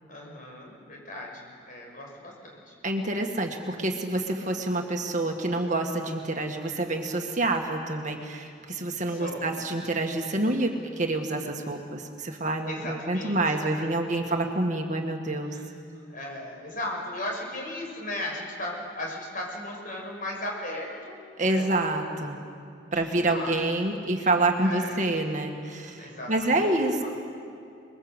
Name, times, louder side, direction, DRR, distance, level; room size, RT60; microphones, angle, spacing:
voice 1, 0.1-2.7 9.1-9.5 12.6-13.7 14.0-14.2 15.5-15.6 16.1-21.1 21.4-21.7 22.9-23.6 24.6-25.0 26.0-26.7 27.0-27.1, left 1 dB, 45° left, 0 dB, 6.5 m, -37 dB
voice 2, 2.8-15.6 21.4-22.4 22.9-27.1, right 2 dB, 40° right, 3 dB, 1.9 m, -27 dB
28.5 x 21.5 x 8.1 m, 2.4 s
head